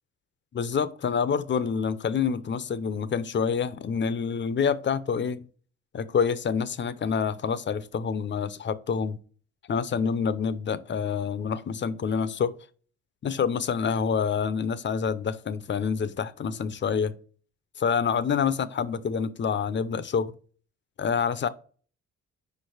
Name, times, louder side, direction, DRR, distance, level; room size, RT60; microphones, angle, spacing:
voice 1, 0.5-5.4 5.9-9.2 9.7-12.5 13.2-17.1 17.8-20.3 21.0-21.5, left 6 dB, 40° left, 0.6 m, -27 dB
5.0 x 4.6 x 4.8 m
cardioid pair, 90°, 30 cm